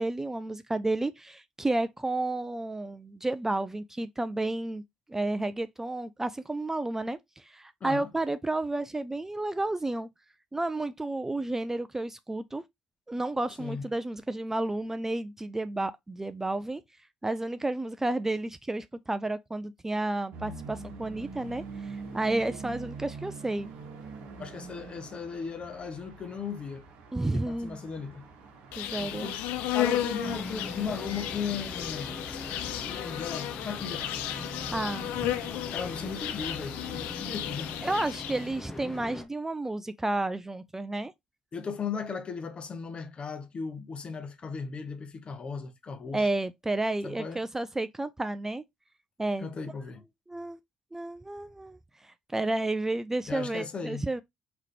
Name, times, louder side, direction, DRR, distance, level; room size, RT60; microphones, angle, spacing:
voice 1, 0.0-4.8 5.1-10.1 10.5-12.6 13.1-16.8 17.2-23.7 27.1-27.8 28.8-29.3 34.7-35.1 37.8-41.1 46.1-48.6 49.2-49.5 50.3-50.6 50.9-54.2, right 2 dB, 15° right, 0.3 m, -31 dB
sound 1, 20.3-30.4, right 4 dB, 65° right, 0.9 m, -44 dB
voice 2, 24.4-26.8 27.2-28.2 29.0-29.5 29.7-32.2 32.9-34.1 35.7-37.8 41.5-46.2 47.0-47.4 49.4-50.0 53.3-54.0, left 5 dB, 40° left, 0.8 m, -36 dB
Insect, 28.7-38.6, left 12 dB, 70° left, 0.4 m, -34 dB
sound 2, 30.2-39.3, left 1 dB, 20° left, 1.0 m, -41 dB
3.7 x 2.9 x 3.2 m
hypercardioid pair, 50°, 3 cm